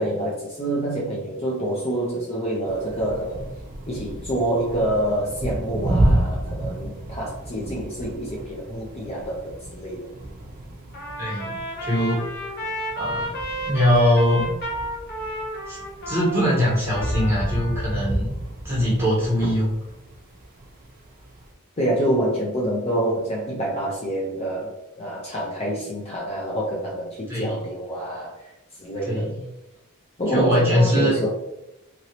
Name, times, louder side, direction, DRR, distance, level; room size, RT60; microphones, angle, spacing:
voice 1, 0.0-3.4 3.9-10.1 21.8-28.5 28.8-29.3 30.2-31.3, right 1 dB, 25° left, -4 dB, 0.5 m, -26 dB
sound 1, 2.7-21.5, right 1 dB, 40° right, 0.6 m, -31 dB
Trumpet, 10.9-18.0, equal, 45° left, 0.8 m, -32 dB
voice 2, 11.2-12.2 13.0-13.3 13.7-14.5 15.7-18.4 18.6-19.7 27.3-27.6 29.0-29.4 30.3-31.2, equal, 10° right, -6 dB, 1.3 m, -22 dB
2.9 x 2.7 x 2.9 m, 0.89 s
head